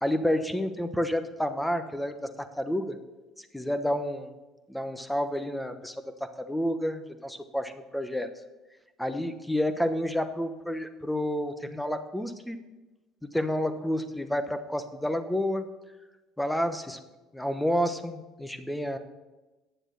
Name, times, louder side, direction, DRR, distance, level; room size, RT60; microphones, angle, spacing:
voice 1, 0.0-3.0 3.4-4.3 4.7-8.3 9.0-12.6 13.2-15.7 16.4-17.0 17.3-19.0, equal, 5° left, 9 dB, 1.0 m, -30 dB
10.0 x 7.2 x 6.8 m, 1.1 s
supercardioid pair, 100°, 0 cm